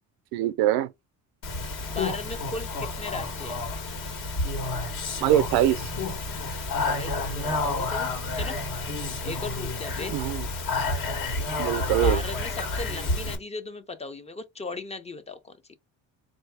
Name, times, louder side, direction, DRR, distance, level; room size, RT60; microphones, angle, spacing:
voice 1, 0.3-0.9 5.2-5.9 10.1-10.5 11.6-12.2, right 12 dB, 90° right, 0.6 m, -23 dB
Speech, 1.4-13.4, left 2 dB, 65° left, 1.5 m, -30 dB
voice 2, 1.9-3.6 6.7-8.6 9.2-10.3 12.0-15.8, left 3 dB, 20° left, 0.4 m, -37 dB
3.9 x 2.7 x 3.3 m
cardioid pair, 125°, 35 cm